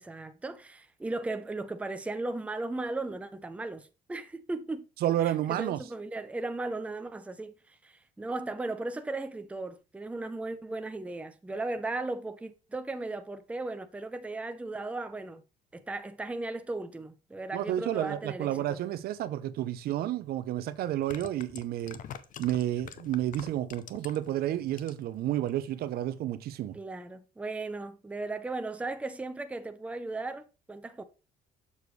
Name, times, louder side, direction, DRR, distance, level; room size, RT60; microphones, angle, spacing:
voice 1, 0.0-4.8 5.2-15.4 15.7-18.8 26.7-31.0, right 2 dB, 5° right, 0.6 m, -36 dB
voice 2, 5.0-5.8 17.5-22.0 22.4-26.8, right 12 dB, 60° right, 0.6 m, -31 dB
sound 1, 19.9-20.0 20.9-24.3 24.7-25.2 25.5-25.6, left 9 dB, 50° left, 0.6 m, -45 dB
6.9 x 6.5 x 3.1 m
cardioid pair, 125°, 17 cm